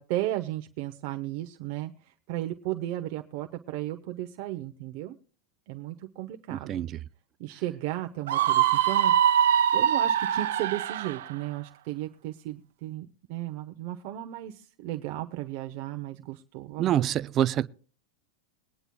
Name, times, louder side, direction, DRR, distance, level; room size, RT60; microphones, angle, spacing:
voice 1, 0.0-5.2 5.7-6.9 7.4-9.4 9.7-17.1, right 15 dB, 45° right, 0.8 m, -35 dB
voice 2, 6.5-7.0 16.8-17.7, right 11 dB, 25° right, 0.4 m, -26 dB
Screaming, 8.3-11.2, right 10 dB, 80° right, 0.9 m, -23 dB
21.5 x 9.9 x 2.3 m
supercardioid pair, 160°, 0 cm